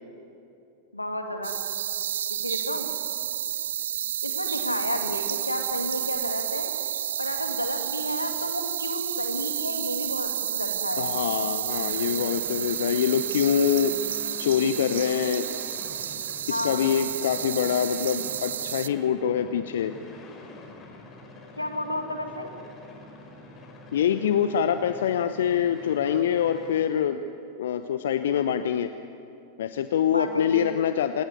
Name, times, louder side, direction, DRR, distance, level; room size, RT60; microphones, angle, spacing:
voice 1, 0.9-1.6 2.3-2.9 4.2-6.7 7.2-11.1 16.5-16.9 21.6-22.5 30.1-30.7, left 1 dB, 85° left, 5 dB, 2.3 m, -32 dB
sound 1, 1.4-18.9, right 9 dB, 65° right, 0.6 m, -30 dB
voice 2, 11.0-13.9 14.4-15.5 16.5-19.9 23.9-27.2 27.6-28.9 29.6-31.2, left 8 dB, 60° left, 10 dB, 0.8 m, -25 dB
sound 2, 11.7-26.9, left 2 dB, 30° left, 5.5 m, -46 dB
27.0 x 19.5 x 9.7 m, 2.7 s
figure-of-eight pair, 90°, 0 cm